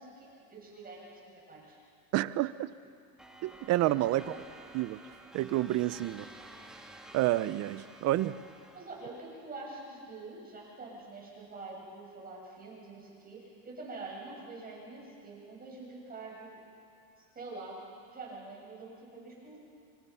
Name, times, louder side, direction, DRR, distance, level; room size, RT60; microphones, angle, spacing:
voice 1, 0.0-1.8 4.1-4.4 8.7-16.6 17.3-17.7 18.1-19.6, right 3 dB, 20° right, -3 dB, 7.1 m, -46 dB
voice 2, 2.1-2.7 3.4-4.4 4.7-5.0 5.3-6.3 7.1-8.4, right 15 dB, 35° right, 17 dB, 0.5 m, -29 dB
sound 1, 3.2-9.4, right 1 dB, ahead, 2.0 m, -52 dB
27.5 x 27.0 x 5.6 m, 2.4 s
supercardioid pair, 150°, 47 cm